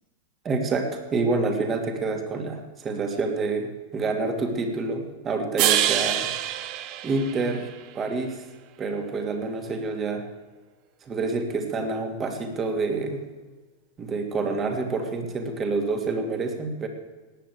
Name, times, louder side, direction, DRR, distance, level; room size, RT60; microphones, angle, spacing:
voice 1, 0.4-6.3 7.0-7.7 7.9-8.4 8.8-10.2 11.1-13.2 14.0-16.9, right 3 dB, 25° right, 5 dB, 2.7 m, -27 dB
sound 1, 5.6-7.9, right 12 dB, 40° right, 1.1 m, -26 dB
18.5 x 9.9 x 7.9 m, 1.3 s
figure-of-eight pair, 90°, 0 cm